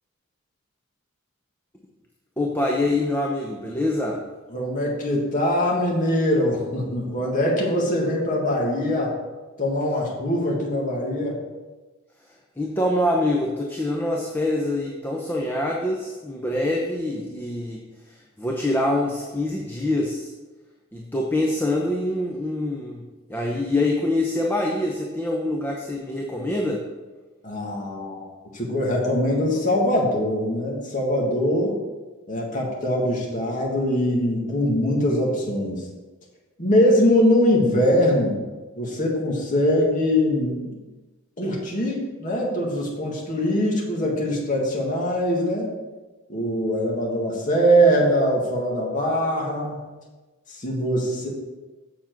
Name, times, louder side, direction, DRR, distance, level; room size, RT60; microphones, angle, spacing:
voice 1, 2.4-4.2 12.6-17.8 18.1-20.3 20.9-23.0 23.3-26.8, left 1 dB, 10° left, -1 dB, 0.7 m, -25 dB
voice 2, 4.5-9.2 9.6-11.4 27.4-28.3 28.5-31.8 32.3-35.8 36.6-38.4 38.8-40.8 41.4-45.7 46.3-49.8 50.5-51.3, equal, 40° left, -3 dB, 1.7 m, -22 dB
7.3 x 7.1 x 4.6 m, 1.2 s
head